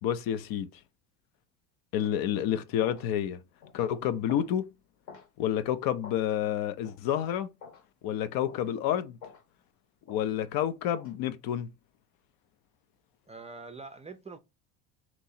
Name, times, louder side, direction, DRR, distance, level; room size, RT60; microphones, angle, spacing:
voice 1, 0.0-0.7 1.9-3.4 3.7-4.7 5.4-7.5 8.0-9.2 10.1-11.7, left 10 dB, 60° left, 0.6 m, -29 dB
sound 1, 2.1-2.3 2.8-3.1 3.6-3.8 4.3-4.5 5.1-5.3 6.0-6.2 6.8-7.0 7.6-7.8 8.5-8.7 9.2-9.5 10.1-10.3 11.0-11.2, left 6 dB, 80° left, 1.9 m, -49 dB
voice 2, 13.3-14.4, right 4 dB, 15° right, 0.4 m, -44 dB
3.0 x 2.6 x 4.1 m
supercardioid pair, 85°, 41 cm